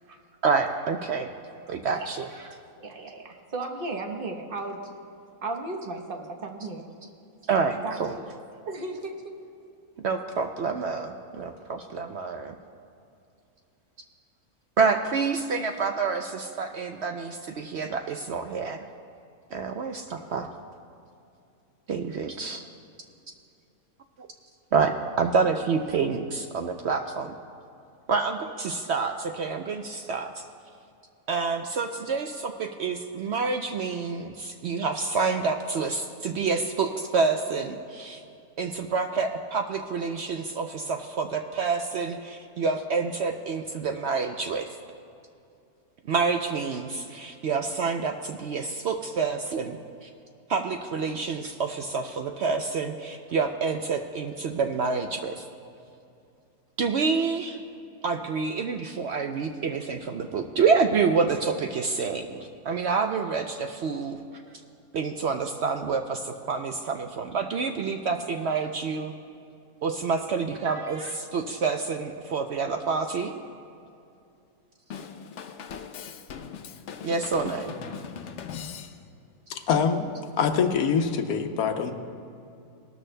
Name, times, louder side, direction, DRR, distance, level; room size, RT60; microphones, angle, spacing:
voice 1, 0.4-1.3 1.7-2.5 7.5-8.1 10.0-12.5 14.8-18.8 19.5-20.5 21.9-22.6 24.2-24.3 24.7-27.3 28.1-30.5 31.3-38.2 38.6-44.8 46.1-49.8 50.0-50.1 50.5-55.4 56.8-57.6 58.0-64.2 64.9-69.1 69.8-73.3 77.0-77.7, right 5 dB, 65° right, 5 dB, 0.7 m, -28 dB
voice 2, 2.8-4.8 5.4-6.9 7.8-8.3 8.6-9.3, right 2 dB, 40° right, 3 dB, 1.1 m, -35 dB
Drum kit / Drum, 74.9-79.3, left 7 dB, 60° left, 0.8 m, -39 dB
voice 3, 79.5-81.9, left 6 dB, 85° left, 6 dB, 1.3 m, -25 dB
18.5 x 13.0 x 2.2 m, 2.6 s
omnidirectional pair, 1.5 m